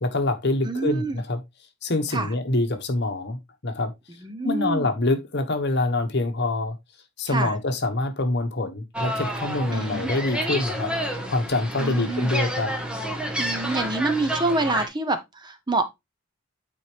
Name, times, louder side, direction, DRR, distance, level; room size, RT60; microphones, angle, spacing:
voice 1, 0.0-1.4 1.8-3.9 4.4-6.8 7.2-12.7, left 2 dB, 50° left, 1.2 m, -25 dB
voice 2, 0.6-1.2 2.1-2.3 4.2-4.9 7.3-7.6 9.7-10.1 11.8-12.3 13.4-15.8, right 2 dB, 20° right, 0.7 m, -27 dB
sound 1, 8.9-14.9, equal, 5° right, 1.2 m, -29 dB
9.1 x 4.3 x 3.3 m
head